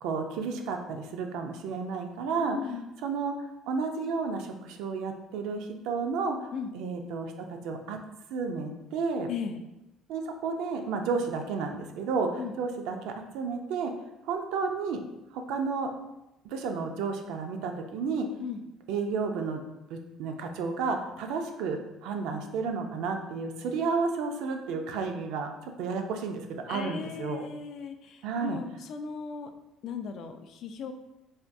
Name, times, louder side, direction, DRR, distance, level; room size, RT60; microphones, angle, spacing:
voice 1, 0.0-3.3 3.7-8.0 8.3-9.3 10.1-13.9 14.2-15.0 15.3-15.9 16.4-18.3 18.9-19.6 19.9-27.4 28.2-28.6, right 4 dB, 80° right, 4 dB, 0.4 m, -32 dB
voice 2, 2.4-2.9 6.5-6.7 9.3-9.6 12.4-12.5 18.4-18.6 26.7-29.5 29.8-30.9, left 6 dB, 65° left, 7 dB, 0.3 m, -37 dB
3.4 x 2.2 x 2.6 m, 0.93 s
supercardioid pair, 85°, 0 cm